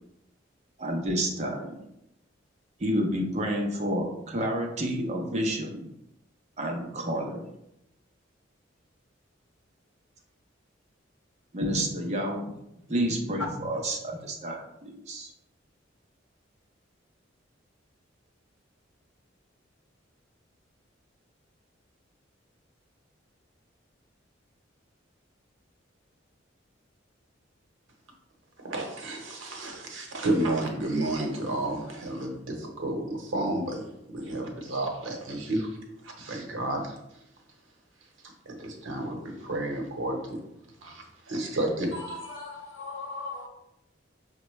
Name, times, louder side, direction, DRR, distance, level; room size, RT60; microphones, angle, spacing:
voice 1, 0.8-1.8 2.8-5.8 6.6-7.5 11.5-12.4 12.9-15.3, equal, 35° right, 0.7 m, -29 dB
voice 2, 28.6-35.7 36.0-36.9 38.5-40.4 40.8-42.2, right 1 dB, 85° right, 0.8 m, -31 dB
voice 3, 42.1-43.5, left 3 dB, 75° left, 0.8 m, -38 dB
5.4 x 2.2 x 3.0 m
head